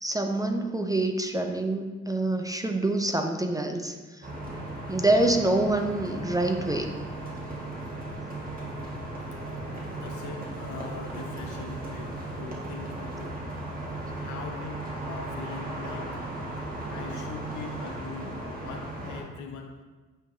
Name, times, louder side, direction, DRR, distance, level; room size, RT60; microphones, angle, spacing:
voice 1, 0.0-4.3 4.9-6.9, right 2 dB, 10° right, 5 dB, 0.5 m, -26 dB
sound 1, 4.2-19.2, right 2 dB, 30° right, 1.6 m, -36 dB
voice 2, 9.9-13.5 14.2-16.2 16.9-19.8, left 4 dB, 80° left, 2 dB, 1.0 m, -41 dB
8.8 x 4.7 x 2.7 m, 1.3 s
cardioid pair, 90°, 30 cm